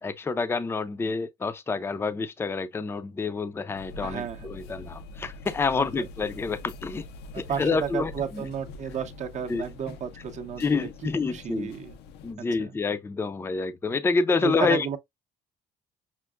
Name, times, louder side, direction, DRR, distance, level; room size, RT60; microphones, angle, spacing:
voice 1, 0.0-7.0 7.4-8.5 9.5-9.6 10.6-11.7 12.2-14.9, left 4 dB, 15° left, 0.4 m, -28 dB
sound 1, 3.7-12.3, left 3 dB, 80° left, 0.5 m, -44 dB
voice 2, 4.0-4.5 6.0-6.1 7.3-10.9 11.3-12.0 12.6-12.7 14.4-15.0, right 8 dB, 45° right, 0.6 m, -33 dB
5.7 x 2.0 x 2.2 m
cardioid pair, 110°, 17 cm